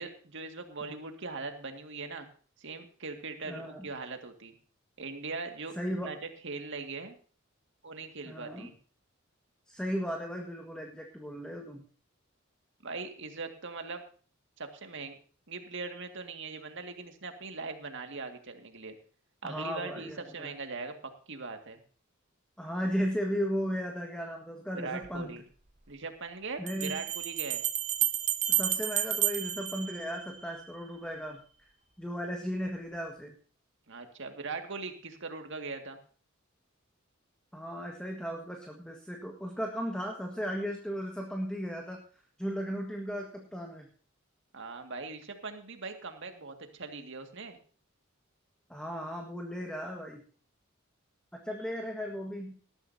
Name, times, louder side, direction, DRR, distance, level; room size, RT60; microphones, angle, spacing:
voice 1, 0.0-2.3 2.6-4.5 5.0-5.8 6.0-6.2 6.4-7.2 7.8-8.7 12.8-14.0 14.6-15.2 15.5-19.0 19.4-21.8 24.7-25.4 25.9-27.6 33.9-36.0 44.5-47.6, right 4 dB, 60° right, 6 dB, 2.0 m, -40 dB
voice 2, 3.4-3.9 5.7-6.1 8.2-8.7 9.7-11.8 19.4-20.5 22.6-25.3 26.6-27.0 28.5-31.4 32.0-33.3 37.5-42.0 42.4-43.9 48.7-50.2 51.3-52.6, equal, 5° left, 1 dB, 1.6 m, -36 dB
Bell, 25.0-25.1 26.7-30.6, right 11 dB, 35° right, 1.1 m, -31 dB
19.0 x 12.5 x 2.8 m, 0.41 s
head